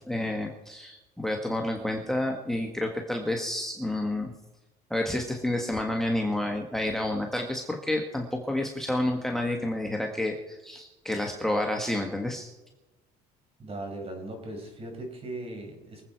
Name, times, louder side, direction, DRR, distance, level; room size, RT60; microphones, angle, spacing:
voice 1, 0.1-4.3 4.9-12.5, left 1 dB, ahead, 1 dB, 1.6 m, -29 dB
voice 2, 13.6-16.0, right 2 dB, 30° right, 2 dB, 5.3 m, -38 dB
24.5 x 8.3 x 4.6 m, 1.1 s
cardioid pair, 110°, 19 cm